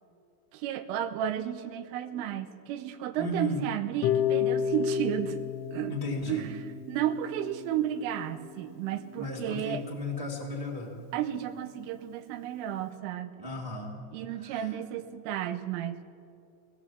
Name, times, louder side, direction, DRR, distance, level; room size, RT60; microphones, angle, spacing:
voice 1, 0.5-5.4 5.7-6.0 6.3-9.8 11.1-13.4 14.1-16.0, right 11 dB, 90° right, 9 dB, 3.6 m, -33 dB
voice 2, 3.2-3.7 5.8-6.5 9.1-10.9 13.3-14.0 14.4-14.6, left 1 dB, 20° right, 0 dB, 0.8 m, -34 dB
Harp, 4.0-10.1, left 9 dB, 75° left, 2.7 m, -33 dB
20.5 x 19.0 x 7.3 m, 2.5 s
omnidirectional pair, 5.6 m